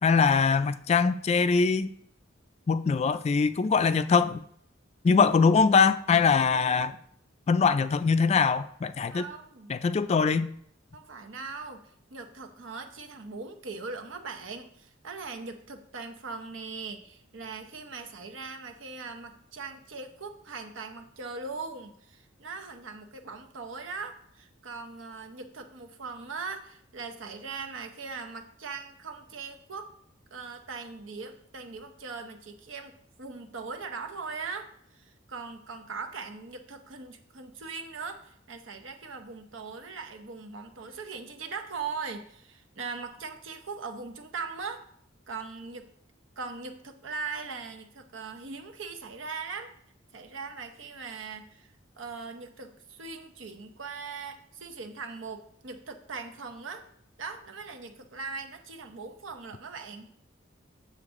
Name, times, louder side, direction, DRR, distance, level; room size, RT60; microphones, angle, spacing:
voice 1, 0.0-1.9 2.7-4.4 5.0-7.0 7.5-9.2 9.7-10.5, left 5 dB, 35° left, 0.3 m, -22 dB
voice 2, 9.1-9.7 10.9-11.8 12.1-29.9 30.3-44.8 45.3-45.9 46.4-49.7 50.1-51.7 52.0-56.9 57.2-60.1, right 4 dB, 80° right, 0.8 m, -40 dB
7.2 x 6.6 x 3.6 m
head